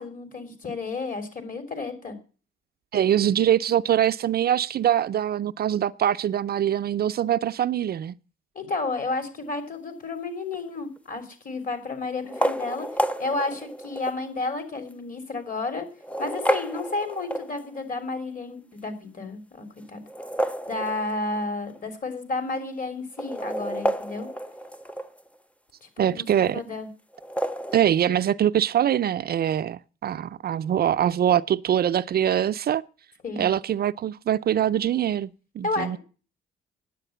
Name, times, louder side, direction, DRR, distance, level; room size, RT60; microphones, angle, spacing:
voice 1, 0.0-2.2 8.6-15.9 16.2-20.0 20.7-24.3 25.8-26.9 33.2-33.5 35.6-36.0, left 3 dB, 45° left, 3.4 m, -32 dB
voice 2, 2.9-8.1 26.0-26.6 27.7-32.8 33.4-36.0, right 10 dB, 50° right, 0.5 m, -23 dB
sound 1, 10.5-11.0 12.2-14.3 14.9-15.0 15.9-17.9 20.0-21.4 21.8-21.9 22.1-22.2 23.0-25.3 27.1-27.8, equal, 5° left, 0.8 m, -30 dB
10.0 x 8.2 x 7.9 m
cardioid pair, 90°, 20 cm